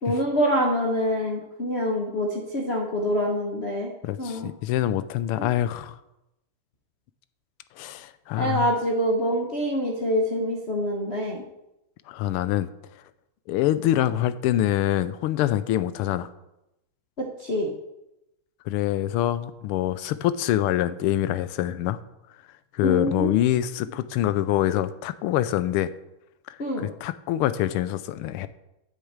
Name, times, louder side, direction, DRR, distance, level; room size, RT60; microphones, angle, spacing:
voice 1, 0.0-3.9 4.2-4.5 5.4-5.5 8.4-11.4 17.2-17.7 22.8-23.3 26.6-26.9, equal, 40° left, 0 dB, 1.1 m, -25 dB
voice 2, 4.0-5.9 7.8-8.7 12.1-12.7 13.5-16.3 18.7-22.0 22.7-25.9 26.5-28.5, left 13 dB, 90° left, 13 dB, 1.5 m, -25 dB
8.3 x 6.6 x 8.0 m, 0.90 s
omnidirectional pair, 2.4 m